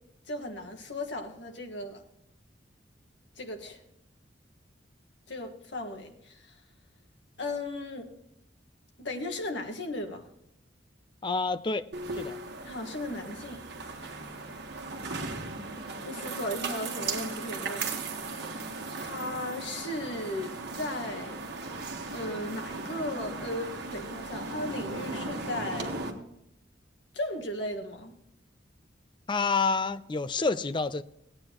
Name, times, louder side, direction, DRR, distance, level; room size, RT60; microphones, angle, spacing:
voice 1, 0.3-2.0 3.3-3.8 5.3-6.6 7.4-8.1 9.0-10.3 12.6-13.6 13.9-14.3 16.0-17.9 19.0-21.4 22.1-26.0 27.1-28.1, left 1 dB, 70° left, 1.6 m, -36 dB
voice 2, 11.2-11.9 12.2-12.4 29.3-31.0, left 4 dB, 25° left, 0.4 m, -28 dB
sound 1, 11.9-26.1, right 3 dB, 60° right, 1.5 m, -37 dB
17.0 x 8.8 x 3.0 m
head